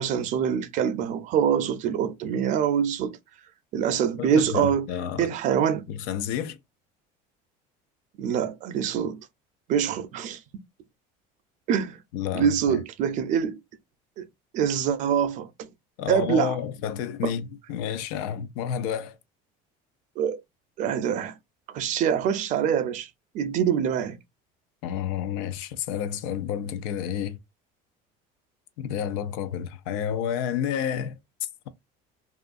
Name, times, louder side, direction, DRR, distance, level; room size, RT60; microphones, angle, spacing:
voice 1, 0.0-3.2 3.7-4.9 5.2-5.8 8.2-9.2 9.7-10.4 11.7-12.0 12.3-13.6 14.2-14.3 14.5-15.7 16.1-16.6 20.2-20.4 20.8-21.3 21.7-23.1 23.3-24.2, right 8 dB, 45° right, 0.4 m, -25 dB
voice 2, 4.2-5.3 5.9-6.6 12.1-12.8 16.0-19.2 24.8-27.4 28.8-31.7, left 9 dB, 85° left, 0.5 m, -30 dB
2.6 x 2.4 x 2.3 m
cardioid pair, 155°, 18 cm